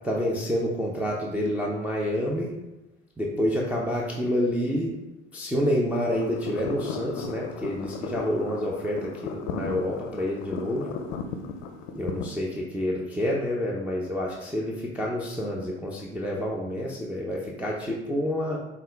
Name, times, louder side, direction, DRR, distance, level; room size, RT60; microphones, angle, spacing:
voice 1, 0.0-2.5 3.2-4.9 5.3-11.0 11.9-18.6, equal, 5° right, -5 dB, 0.6 m, -28 dB
sound 1, 6.1-12.2, left 5 dB, 65° left, 0.5 m, -35 dB
5.5 x 2.4 x 3.3 m, 1.0 s
hypercardioid pair, 65°, 33 cm